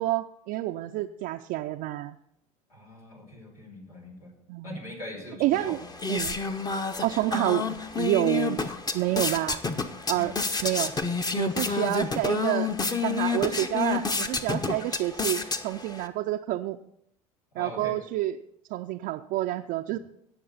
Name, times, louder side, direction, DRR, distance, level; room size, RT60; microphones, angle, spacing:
voice 1, 0.0-2.2 4.5-4.8 5.4-5.8 6.1-6.4 7.0-8.6 8.9-9.6 10.1-10.3 10.6-10.9 11.4-12.7 13.0-16.8 17.6-18.4 18.7-20.0, right 15 dB, 55° right, 4 dB, 0.5 m, -28 dB
voice 2, 2.7-4.3 4.6-5.9 10.1-10.4 11.6-11.8 17.5-18.0, left 2 dB, 90° left, -2 dB, 3.0 m, -42 dB
sound 1, 5.5-16.1, left 4 dB, 20° left, 1.0 m, -29 dB
18.5 x 6.9 x 4.2 m, 0.75 s
hypercardioid pair, 70°, 18 cm